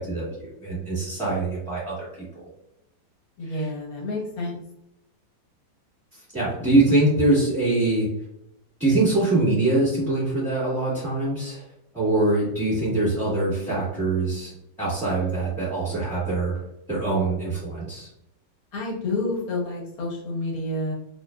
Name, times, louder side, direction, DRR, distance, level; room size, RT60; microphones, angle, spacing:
voice 1, 0.0-2.2 3.5-3.7 6.3-8.1 8.8-11.6 11.9-14.5 14.8-16.6 16.9-18.1, right 2 dB, 5° left, -12 dB, 1.1 m, -23 dB
voice 2, 3.4-4.6 18.7-20.9, left 2 dB, 60° left, -3 dB, 1.2 m, -29 dB
2.9 x 2.5 x 2.2 m, 0.82 s
omnidirectional pair, 2.0 m